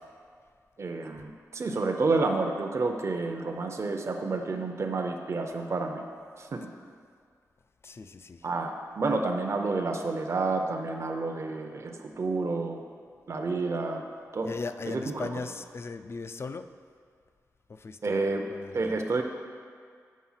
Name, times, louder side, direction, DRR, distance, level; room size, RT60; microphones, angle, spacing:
voice 1, 0.8-6.0 6.4-6.7 8.4-12.8 13.3-14.1 14.3-14.5 14.9-15.3 18.0-18.4 18.7-19.2, right 3 dB, 50° right, 3 dB, 0.6 m, -29 dB
voice 2, 7.8-8.5 14.4-16.7 17.7-19.0, left 4 dB, 45° left, 10 dB, 0.4 m, -38 dB
7.3 x 5.5 x 5.6 m, 2.1 s
wide cardioid pair, 85°, 6 cm